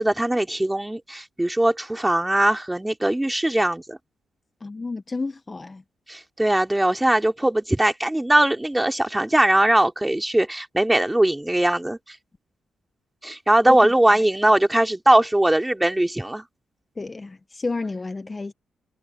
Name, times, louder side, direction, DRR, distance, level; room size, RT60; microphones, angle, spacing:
voice 1, 0.0-4.0 6.1-12.2 13.2-16.4, right 1 dB, 10° right, 3.0 m, -20 dB
voice 2, 4.6-5.8 13.7-13.8 17.0-18.5, left 3 dB, 30° left, 1.1 m, -30 dB
cardioid pair, 70°, 0 cm